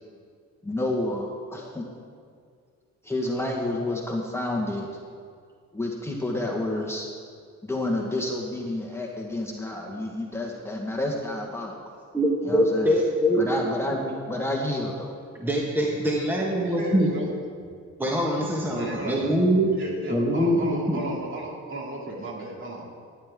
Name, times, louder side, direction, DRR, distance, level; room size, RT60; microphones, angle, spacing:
voice 1, 0.6-1.9 3.0-4.9 5.7-7.1 7.6-11.7 12.4-12.9 13.4-15.1, left 1 dB, 10° left, -2 dB, 1.4 m, -29 dB
voice 2, 12.1-13.4 15.3-17.1 18.0-19.7 20.1-21.0, equal, 5° right, -3 dB, 1.5 m, -23 dB
voice 3, 16.7-17.3 18.7-19.3 19.7-22.9, right 2 dB, 40° right, -2 dB, 2.7 m, -35 dB
12.5 x 10.0 x 3.7 m, 2.1 s
cardioid pair, 90°, 30 cm